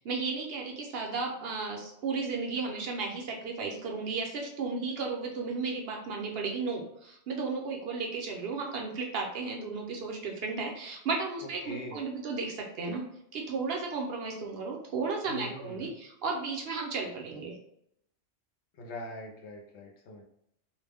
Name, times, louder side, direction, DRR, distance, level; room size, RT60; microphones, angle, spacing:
voice 1, 0.0-13.0 13.3-17.6, right 4 dB, 65° right, 1 dB, 0.7 m, -34 dB
voice 2, 11.6-12.0 15.3-15.9 18.8-20.2, left 1 dB, 75° left, 1 dB, 0.9 m, -42 dB
2.4 x 2.0 x 3.3 m, 0.74 s
omnidirectional pair, 1.2 m